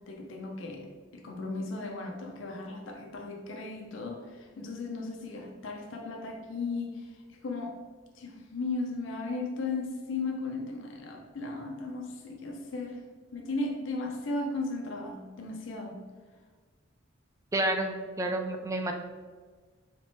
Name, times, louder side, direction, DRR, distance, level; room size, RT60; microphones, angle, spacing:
voice 1, 0.1-0.9 1.1-7.1 7.4-7.8 8.2-13.0 13.3-16.0, left 3 dB, 75° left, 1 dB, 0.5 m, -36 dB
voice 2, 17.5-18.9, right 1 dB, 15° right, 4 dB, 0.3 m, -30 dB
4.0 x 3.4 x 2.6 m, 1.5 s
head